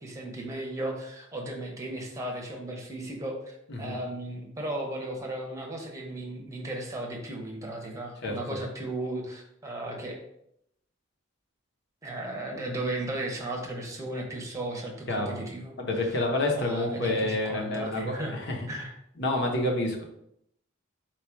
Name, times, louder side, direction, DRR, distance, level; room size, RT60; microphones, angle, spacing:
voice 1, 0.0-10.2 12.0-15.7 16.5-18.4 18.7-18.9, right 1 dB, 15° right, 0 dB, 0.8 m, -35 dB
voice 2, 15.1-15.4 15.8-18.7 19.2-20.0, left 2 dB, 55° left, 0 dB, 0.9 m, -28 dB
4.5 x 2.4 x 4.5 m, 0.76 s
head